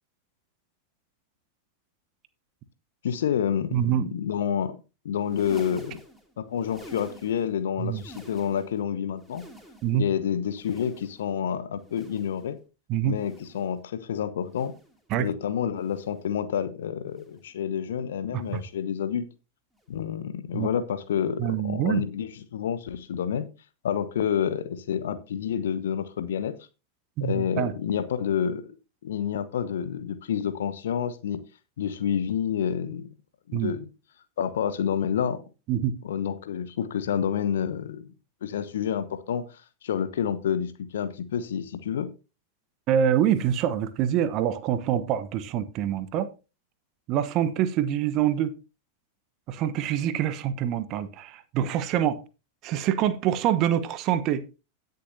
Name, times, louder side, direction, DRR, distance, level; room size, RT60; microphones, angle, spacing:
voice 1, 3.0-4.8 5.0-6.0 6.4-9.4 9.9-12.6 13.0-14.7 15.2-19.3 19.9-23.5 23.8-26.6 27.2-28.7 29.0-31.4 31.8-33.1 33.5-33.9 34.4-35.4 36.0-38.1 38.4-42.1, left 8 dB, 60° left, 1.0 m, -29 dB
voice 2, 3.7-4.1 7.8-8.0 9.8-10.0 12.9-13.2 15.1-15.3 18.3-18.6 20.5-20.7 21.4-22.0 27.2-27.7 33.5-33.7 35.7-35.9 42.9-46.3 47.1-48.5 49.5-52.2 52.6-54.4, right 10 dB, 40° right, 1.0 m, -25 dB
sound 1, 5.2-7.6 7.8-8.8 9.1-10.1 10.5-11.4 11.8-12.6 13.1-13.8 14.5-15.0 15.8-16.3 17.1-17.5 18.4-18.8 19.7-19.9 21.1-21.2, right 1 dB, ahead, 2.5 m, -49 dB
17.0 x 6.7 x 2.7 m
figure-of-eight pair, 90°, 0 cm